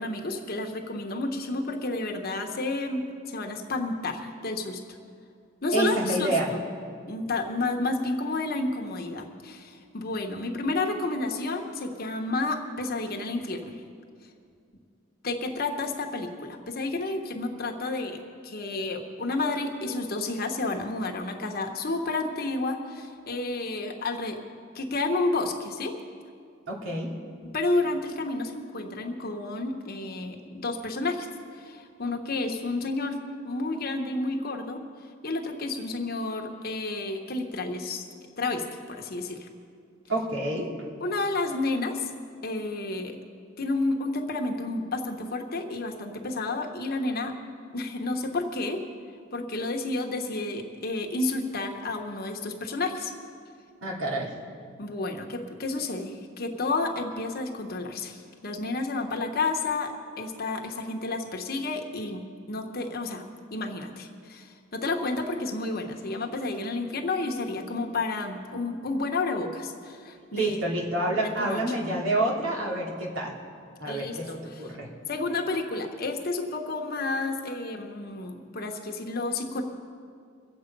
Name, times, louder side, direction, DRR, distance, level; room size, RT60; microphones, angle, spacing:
voice 1, 0.0-4.8 5.6-6.6 7.0-13.8 15.2-24.4 24.7-25.9 27.4-31.3 31.6-33.2 33.4-34.8 35.2-38.0 38.4-39.5 41.0-42.1 42.4-43.2 43.6-47.3 47.7-48.8 49.3-53.1 54.8-62.2 62.5-63.2 63.5-70.6 71.2-71.6 73.8-74.6 75.1-79.6, left 2 dB, 50° left, 3 dB, 1.2 m, -31 dB
voice 2, 5.7-6.5 26.7-27.1 40.1-40.7 53.8-54.3 70.3-73.4 73.8-74.3 74.6-74.9, right 1 dB, 85° right, -3 dB, 2.7 m, -28 dB
23.5 x 7.9 x 5.3 m, 2.4 s
head